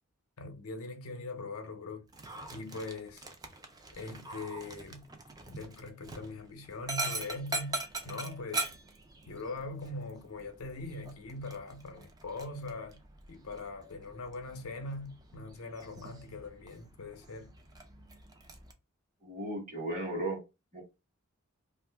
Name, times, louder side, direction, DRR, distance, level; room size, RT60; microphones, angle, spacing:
voice 1, 0.4-2.1 2.5-3.2 3.9-5.1 5.5-7.8 8.0-8.8 9.3-13.0 13.3-17.5, left 2 dB, 80° left, 0.7 m, -41 dB
Dog, 2.1-18.7, right 2 dB, 20° right, 0.4 m, -43 dB
voice 2, 19.2-20.4 20.7-20.8, right 1 dB, 35° right, 1.2 m, -35 dB
2.6 x 2.4 x 3.3 m
head